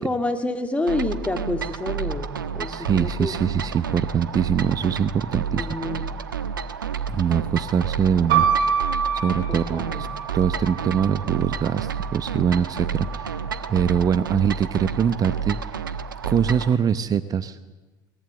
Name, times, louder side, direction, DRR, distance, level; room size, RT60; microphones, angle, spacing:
voice 1, 0.0-3.3 5.5-6.1 9.5-10.0, left 2 dB, 10° left, 6 dB, 3.0 m, -28 dB
sound 1, 0.9-16.7, right 6 dB, 90° right, 1.2 m, -30 dB
voice 2, 2.7-5.7 7.1-8.8 9.1-10.1 10.3-13.4 13.7-15.6 16.2-17.6, right 7 dB, 35° right, 14 dB, 0.9 m, -23 dB
sound 2, 8.3-12.1 13.0-13.7, right 7 dB, 55° right, 5.7 m, -26 dB
23.0 x 20.5 x 7.9 m, 1.2 s
hypercardioid pair, 75°, 11 cm